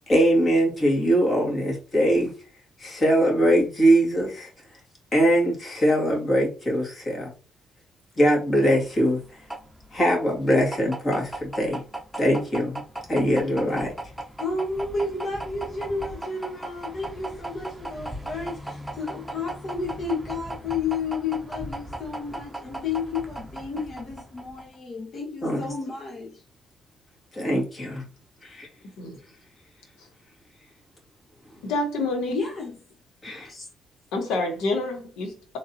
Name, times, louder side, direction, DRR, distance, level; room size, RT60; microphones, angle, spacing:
voice 1, 0.1-2.3 2.8-4.5 5.1-7.3 8.2-9.2 9.9-11.8 12.2-12.8 13.1-13.9 25.4-25.6 27.3-28.0 28.4-28.7 33.2-33.6, equal, 35° left, 2.3 m, -22 dB
sound 1, 8.8-24.8, right 1 dB, 5° right, 0.9 m, -37 dB
voice 2, 14.4-26.4 32.3-32.8, left 4 dB, 50° left, 1.1 m, -31 dB
voice 3, 31.6-32.4 34.1-35.6, left 2 dB, 90° left, 1.3 m, -28 dB
3.8 x 3.5 x 2.8 m
cardioid pair, 90°, 0 cm